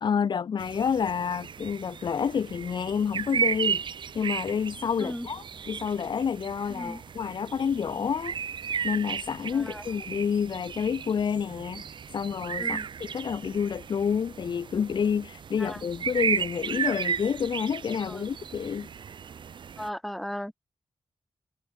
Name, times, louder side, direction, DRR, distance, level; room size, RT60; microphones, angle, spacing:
voice 1, 0.0-3.8 4.1-8.4 8.8-11.8 12.1-18.9, left 7 dB, 55° left, 0.7 m, -29 dB
sound 1, 0.6-19.9, right 7 dB, 55° right, 0.9 m, -34 dB
voice 2, 19.8-20.5, equal, ahead, 1.1 m, -36 dB
wide cardioid pair, 170°, 9 cm